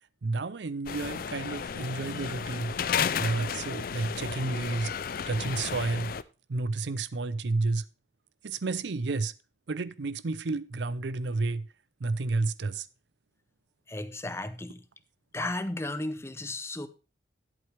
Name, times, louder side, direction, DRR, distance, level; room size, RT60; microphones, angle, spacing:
voice 1, 0.2-2.8 3.1-4.9 5.3-6.1 6.5-7.8 8.4-9.3 9.7-11.7 12.0-12.9, right 3 dB, 70° right, 0.6 m, -31 dB
sound 1, 0.9-6.2, left 7 dB, 50° left, 0.4 m, -33 dB
voice 2, 13.9-14.8 15.3-16.9, left 2 dB, 15° left, 0.7 m, -34 dB
11.0 x 8.1 x 3.4 m
head